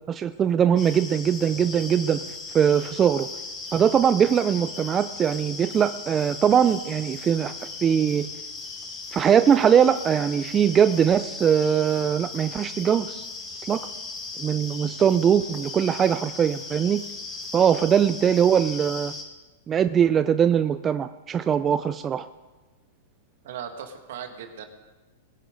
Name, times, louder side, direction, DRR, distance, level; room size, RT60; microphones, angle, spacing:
voice 1, 0.1-2.2 2.5-3.3 3.7-7.5 7.8-8.3 9.1-13.3 13.7-13.8 14.4-17.0 17.5-19.1 19.7-22.2, right 8 dB, 25° right, 11 dB, 0.4 m, -21 dB
sound 1, 0.8-19.2, left 3 dB, 30° left, 3.5 m, -38 dB
voice 2, 23.4-24.6, right 8 dB, 70° right, 5 dB, 1.9 m, -37 dB
21.5 x 10.0 x 3.9 m, 1.2 s
hypercardioid pair, 125°, 0 cm